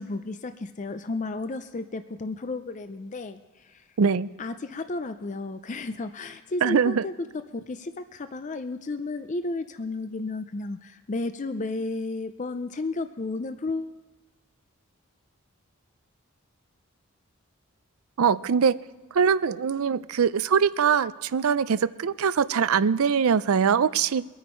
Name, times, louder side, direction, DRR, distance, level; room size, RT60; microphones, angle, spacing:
voice 1, 0.0-3.8 4.4-7.1 7.5-14.0, left 3 dB, 35° left, 9 dB, 0.4 m, -33 dB
voice 2, 4.0-4.3 6.6-7.0 18.2-18.8 19.1-24.3, right 6 dB, 75° right, 17 dB, 0.4 m, -22 dB
23.5 x 9.3 x 4.5 m, 1.3 s
head